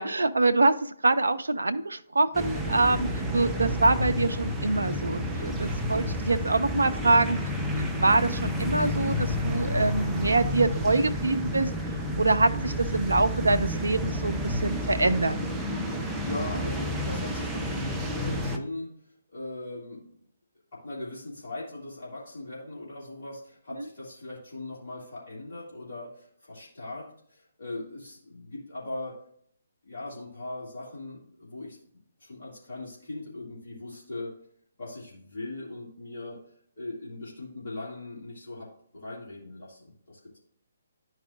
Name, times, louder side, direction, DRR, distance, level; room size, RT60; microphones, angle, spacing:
voice 1, 0.0-7.4 8.0-11.7 12.2-15.4, right 2 dB, 70° right, 10 dB, 0.4 m, -25 dB
sound 1, 2.3-18.6, equal, 5° right, 0.7 m, -30 dB
voice 2, 15.9-18.9 19.3-20.1 20.7-29.2 29.8-31.8 32.2-34.3 34.8-36.4 36.8-40.4, left 2 dB, 50° left, -6 dB, 2.2 m, -39 dB
11.0 x 4.7 x 2.4 m, 0.64 s
figure-of-eight pair, 135°, 0 cm